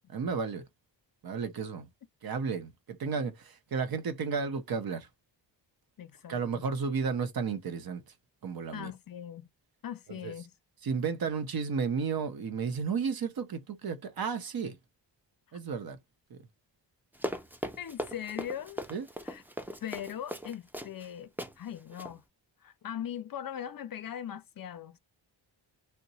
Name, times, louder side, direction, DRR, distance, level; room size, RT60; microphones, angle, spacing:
voice 1, 0.1-0.6 1.2-1.9 2.2-5.1 6.3-8.0 8.4-8.9 10.1-10.3 10.8-14.8 15.5-16.0 16.3-16.4 18.9-19.1, right 5 dB, 55° right, 0.7 m, -33 dB
voice 2, 6.0-6.6 8.7-9.5 9.8-10.5 17.8-18.8 19.2-19.4 19.8-22.2 22.6-25.0, left 9 dB, 50° left, 0.5 m, -40 dB
Run, 17.1-21.1 21.4-21.5 21.9-22.1, equal, 5° right, 0.4 m, -38 dB
2.8 x 2.1 x 4.0 m
wide cardioid pair, 130°, 44 cm